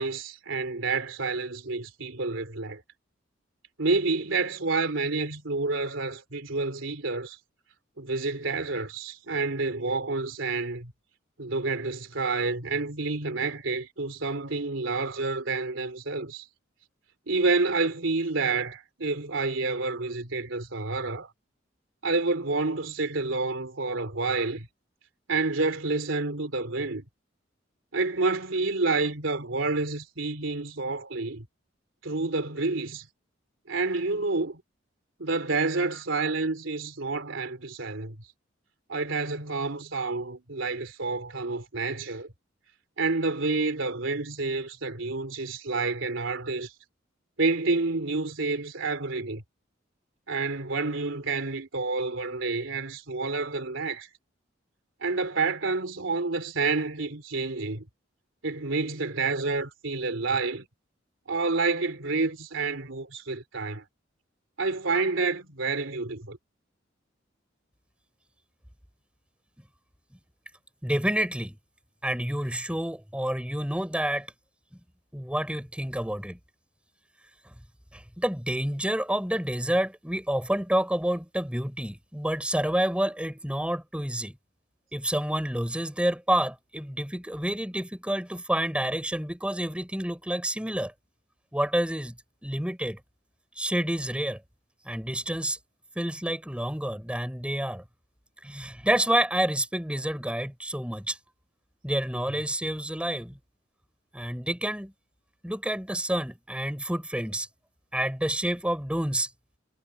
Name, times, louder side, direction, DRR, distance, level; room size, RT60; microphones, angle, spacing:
voice 1, 0.0-2.8 3.8-7.4 8.0-10.9 11.4-16.5 17.3-21.3 22.0-24.7 25.3-27.0 27.9-31.5 32.0-33.1 33.7-34.6 35.2-38.2 38.9-42.3 43.0-46.7 47.4-49.4 50.3-54.1 55.0-57.8 58.4-60.7 61.3-63.8 64.6-66.4, right 3 dB, 75° right, 3.1 m, -29 dB
voice 2, 70.8-71.6 72.0-74.3 75.1-76.4 77.9-84.4 84.9-90.9 91.5-92.2 92.4-93.0 93.6-94.4 94.9-95.6 96.0-97.8 98.4-101.2 101.8-103.4 104.1-104.9 105.4-107.5 107.9-109.3, right 1 dB, 5° right, 5.4 m, -28 dB
head